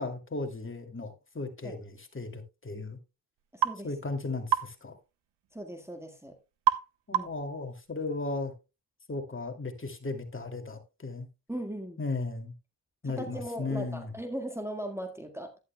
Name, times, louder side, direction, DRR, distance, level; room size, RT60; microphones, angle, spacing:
voice 1, 0.0-3.0 3.8-5.0 7.1-8.5 9.1-11.3 12.0-12.5 13.0-14.1, left 3 dB, 30° left, 2.7 m, -36 dB
voice 2, 3.5-3.9 5.5-6.4 7.1-7.3 11.5-12.0 13.0-15.5, right 1 dB, 5° right, 1.8 m, -38 dB
sound 1, 3.6-3.8 4.5-4.7 6.7-6.9 7.1-7.5, right 9 dB, 85° right, 1.0 m, -26 dB
11.5 x 11.0 x 2.3 m
cardioid pair, 60°, 41 cm